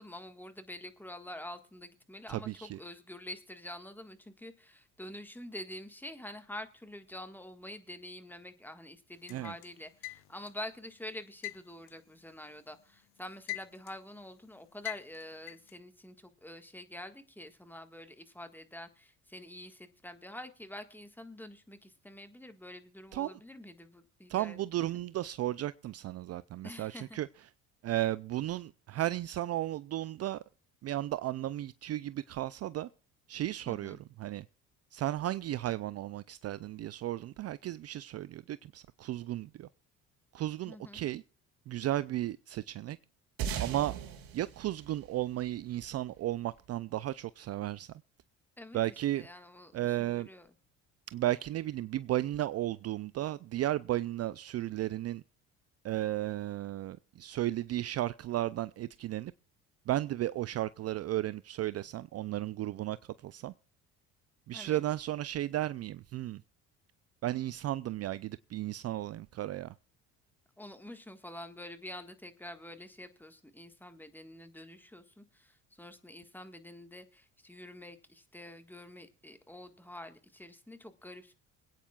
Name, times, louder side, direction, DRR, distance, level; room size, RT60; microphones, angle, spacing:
voice 1, 0.0-24.6 26.6-27.2 33.7-34.0 40.6-41.0 48.6-48.8 49.1-50.5 64.5-64.8 70.6-81.3, left 1 dB, 5° left, 1.6 m, -47 dB
voice 2, 2.3-2.8 9.3-9.5 23.1-23.4 24.3-27.3 27.8-30.4 30.8-32.9 33.3-34.4 34.9-39.7 40.3-41.2 41.7-43.0 43.6-43.9 44.3-47.9 48.7-49.3 49.7-50.3 51.1-55.2 55.8-59.3 59.9-63.0 63.2-63.5 64.5-66.4 67.2-69.7, right 14 dB, 45° right, 0.4 m, -34 dB
sound 1, 9.3-10.6 11.4-12.8 13.2-14.1 14.9-15.7, left 26 dB, 75° left, 0.7 m, -42 dB
sound 2, 43.4-46.2, right 8 dB, 65° right, 2.2 m, -39 dB
26.0 x 9.1 x 2.4 m
hypercardioid pair, 65°, 37 cm